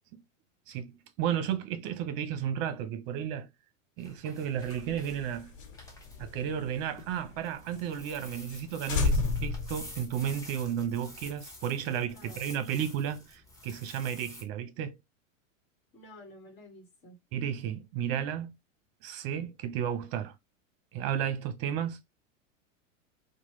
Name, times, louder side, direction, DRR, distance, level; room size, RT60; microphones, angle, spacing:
voice 1, 1.2-3.5 4.0-5.5 6.2-15.0 17.3-18.5 19.0-20.3 20.9-22.0, right 9 dB, 50° right, 0.8 m, -33 dB
sound 1, 4.0-14.4, left 1 dB, 10° left, 0.9 m, -50 dB
sound 2, 4.5-7.4 7.7-7.8 8.1-8.2 8.5-8.6 8.9-10.6, left 3 dB, 80° left, 1.1 m, -32 dB
voice 2, 12.1-12.6 15.9-17.2, left 1 dB, 30° left, 1.4 m, -51 dB
3.0 x 2.2 x 3.1 m
hypercardioid pair, 115°, 39 cm